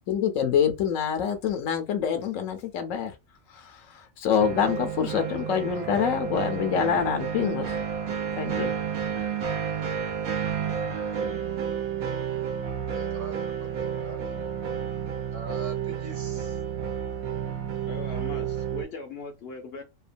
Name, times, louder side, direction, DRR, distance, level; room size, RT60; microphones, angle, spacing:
voice 1, 0.1-3.1 3.5-7.8 8.4-8.7, left 7 dB, 75° left, 1.0 m, -26 dB
sound 1, 4.4-18.8, right 8 dB, 90° right, 1.0 m, -31 dB
voice 2, 12.9-14.2 15.3-16.6, right 2 dB, 55° right, 0.9 m, -43 dB
voice 3, 17.9-19.8, left 3 dB, 60° left, 0.7 m, -39 dB
2.8 x 2.2 x 2.5 m
omnidirectional pair, 1.4 m